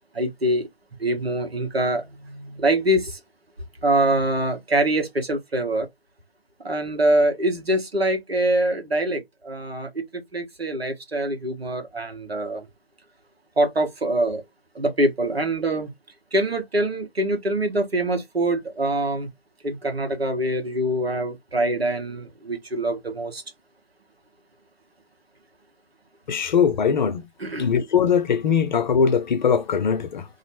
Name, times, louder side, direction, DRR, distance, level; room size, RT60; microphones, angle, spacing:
voice 1, 0.2-0.6 1.0-2.0 2.3-3.0 3.8-5.9 6.6-9.2 9.5-9.9 10.3-12.6 13.6-14.4 14.8-15.9 16.3-19.3 19.6-23.4 27.4-27.7, right 1 dB, 90° right, 1.1 m, -24 dB
voice 2, 26.3-27.2 27.6-30.3, left 7 dB, 50° left, 0.5 m, -21 dB
2.5 x 2.0 x 2.9 m
figure-of-eight pair, 135°, 30 cm